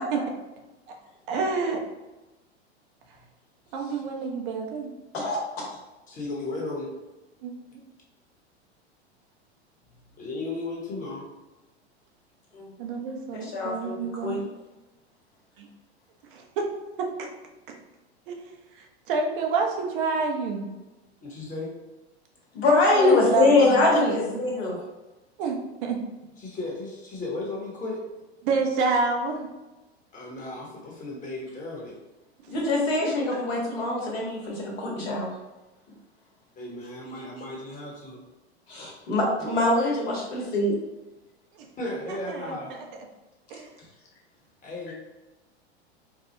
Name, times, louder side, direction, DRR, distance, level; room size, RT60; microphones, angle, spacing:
voice 1, 1.3-1.8 3.7-4.9 7.4-7.6 12.8-14.4 15.6-15.7 16.3-16.6 18.3-20.7 22.9-24.4 25.4-26.0 28.4-29.5 32.4-32.5 39.5-39.7 41.5-41.7 42.1-42.8 43.5-43.7, right 4 dB, 50° right, 2 dB, 0.9 m, -29 dB
voice 2, 5.1-5.8 12.5-12.7 13.3-13.9 14.2-14.4 22.5-24.8 32.5-35.3 38.7-40.7, left 2 dB, 65° left, -3 dB, 1.5 m, -23 dB
voice 3, 6.1-6.9 10.2-11.3 21.2-21.7 26.4-28.0 30.1-31.9 36.6-38.2 41.8-42.7 44.6-44.9, left 2 dB, 25° left, -3 dB, 1.3 m, -35 dB
4.8 x 2.3 x 2.8 m, 1.1 s
hypercardioid pair, 95°, 33 cm